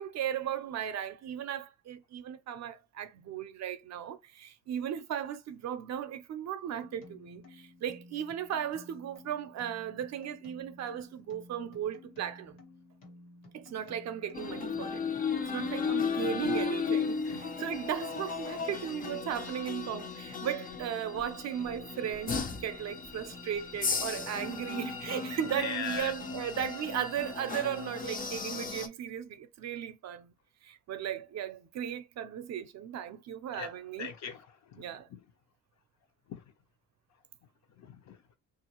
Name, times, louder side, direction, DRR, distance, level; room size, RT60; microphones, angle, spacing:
voice 1, 0.0-12.6 13.5-15.0 15.5-30.3 30.6-34.1 34.8-35.1, right 9 dB, 55° right, 0.5 m, -36 dB
sound 1, 6.8-26.3, left 2 dB, 85° left, 1.3 m, -54 dB
sound 2, 14.3-28.9, left 5 dB, 25° left, 0.5 m, -35 dB
voice 2, 25.6-26.1 33.5-33.7 34.0-34.9 35.1-35.2 36.3-36.4 37.8-38.2, left 6 dB, 60° left, 0.7 m, -39 dB
3.1 x 2.5 x 2.9 m
cardioid pair, 150°, 32 cm